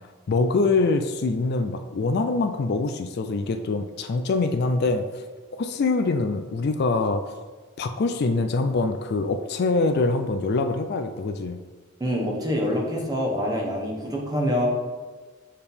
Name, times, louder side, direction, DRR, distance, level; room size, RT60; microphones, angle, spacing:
voice 1, 0.3-5.2 5.5-7.2 7.8-11.6, left 3 dB, 50° left, 7 dB, 0.3 m, -24 dB
voice 2, 12.0-14.7, equal, 20° right, -1 dB, 1.1 m, -25 dB
6.7 x 4.3 x 3.5 m, 1.4 s
head